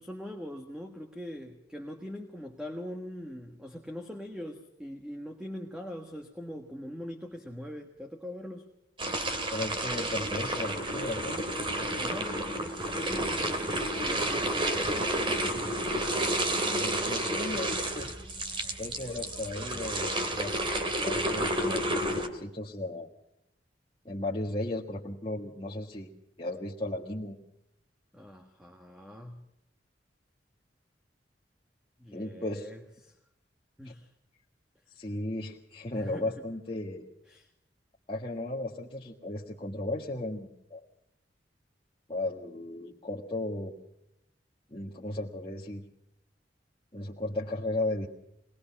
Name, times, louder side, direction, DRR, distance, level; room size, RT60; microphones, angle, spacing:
voice 1, 0.0-8.6 12.0-15.0 28.1-29.5 32.0-33.1 33.8-34.1 35.9-36.3 37.3-37.5, equal, 5° right, 4 dB, 1.5 m, -42 dB
sound 1, 9.0-22.3, right 1 dB, 30° right, 2.4 m, -31 dB
voice 2, 9.5-11.4 16.7-18.2 18.8-20.5 21.0-23.1 24.0-26.1 26.4-27.4 32.1-32.7 33.8-33.9 34.9-37.1 38.1-40.8 42.1-43.7 44.7-45.8 46.9-48.1, left 2 dB, 30° left, -4 dB, 1.6 m, -35 dB
22.5 x 20.5 x 5.9 m, 0.81 s
head